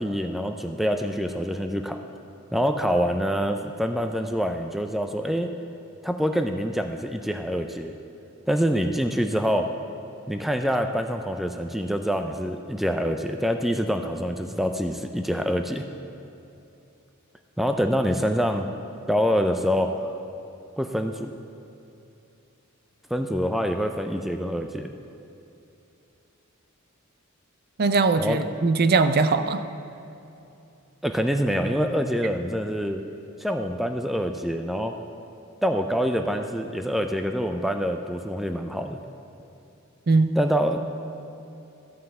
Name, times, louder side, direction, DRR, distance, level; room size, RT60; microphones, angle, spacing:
voice 1, 0.0-2.0 2.5-5.5 6.0-7.9 8.5-9.7 10.3-15.9 17.6-18.7 19.1-19.9 20.8-21.3 23.1-24.9 28.2-28.4 31.0-33.0 33.4-34.9 35.6-39.0 40.4-40.8, equal, ahead, 5 dB, 0.4 m, -25 dB
voice 2, 27.8-29.6 40.1-40.4, right 3 dB, 50° right, 10 dB, 0.6 m, -20 dB
13.5 x 5.6 x 7.7 m, 2.8 s
head